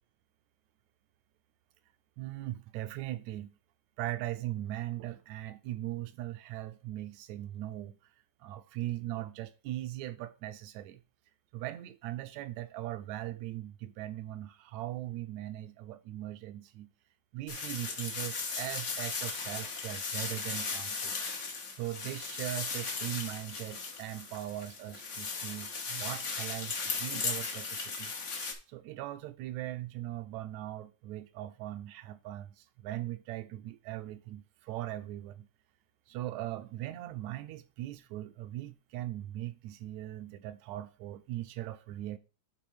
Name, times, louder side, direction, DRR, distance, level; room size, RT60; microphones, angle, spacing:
voice 1, 2.2-3.5 4.0-8.0 8.4-11.0 11.5-16.9 17.3-21.2 21.8-28.1 28.7-35.5 36.1-42.2, right 14 dB, 75° right, 1.9 m, -40 dB
sound 1, 17.5-28.5, left 4 dB, 80° left, 0.6 m, -37 dB
10.0 x 3.9 x 4.9 m
omnidirectional pair, 3.4 m